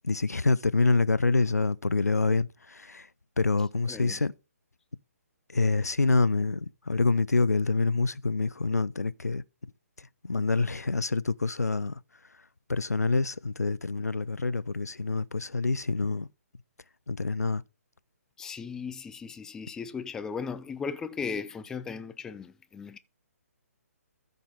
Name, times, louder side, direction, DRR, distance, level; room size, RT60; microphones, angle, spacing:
voice 1, 0.0-3.1 3.4-4.3 5.5-9.4 10.2-12.0 12.7-16.3 17.1-17.6, left 3 dB, 85° left, 0.4 m, -26 dB
voice 2, 3.9-4.2 18.4-23.0, left 5 dB, 5° left, 0.4 m, -37 dB
14.0 x 5.5 x 3.6 m
figure-of-eight pair, 135°, 8 cm